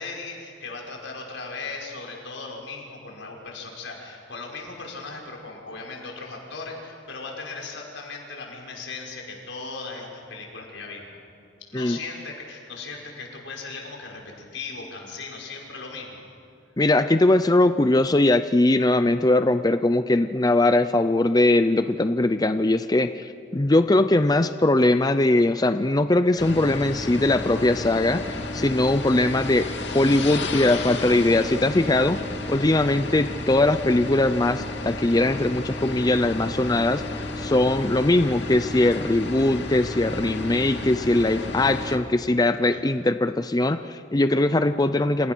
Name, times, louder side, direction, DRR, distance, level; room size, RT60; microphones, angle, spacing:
voice 1, 0.0-11.1 11.7-14.2 14.5-16.2 42.6-42.8, left 3 dB, 90° left, -1 dB, 5.9 m, -37 dB
voice 2, 16.8-29.7 29.9-32.2 32.5-45.3, left 2 dB, 20° left, 10 dB, 0.6 m, -21 dB
sound 1, 26.4-42.0, left 2 dB, 70° left, 2.6 m, -32 dB
29.0 x 27.5 x 6.2 m, 2.4 s
head